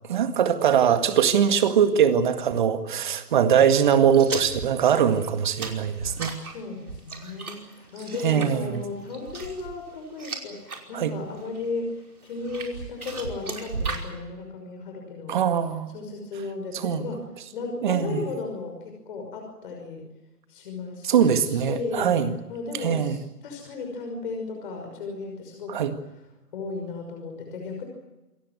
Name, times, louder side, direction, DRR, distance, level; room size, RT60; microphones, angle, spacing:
voice 1, 0.1-6.3 8.2-8.8 10.9-11.1 15.3-15.9 16.7-17.0 17.8-18.2 21.0-22.3 22.8-23.2 25.7-25.9, right 8 dB, 30° right, 9 dB, 1.9 m, -22 dB
sound 1, 4.1-10.8 11.2-11.7 12.3-14.1, right 4 dB, 65° right, 5.3 m, -36 dB
voice 2, 6.4-15.4 15.9-17.2 17.5-20.1 20.5-22.2 22.5-25.9 26.5-27.8, left 3 dB, 35° left, 2 dB, 5.9 m, -35 dB
28.0 x 15.5 x 9.4 m, 1.0 s
figure-of-eight pair, 150°, 47 cm